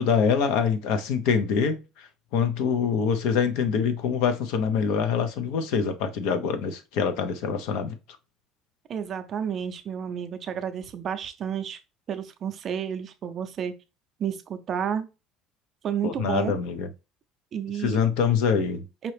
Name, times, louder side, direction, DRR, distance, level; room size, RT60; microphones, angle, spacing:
voice 1, 0.0-2.1 2.3-7.9 16.0-16.9 17.8-18.8, left 6 dB, 70° left, 0.7 m, -25 dB
voice 2, 8.9-11.8 12.1-13.7 14.2-15.1 15.8-16.6 17.5-18.0 19.0-19.1, right 8 dB, 30° right, 0.5 m, -31 dB
5.2 x 2.9 x 3.2 m
cardioid pair, 175°, 0 cm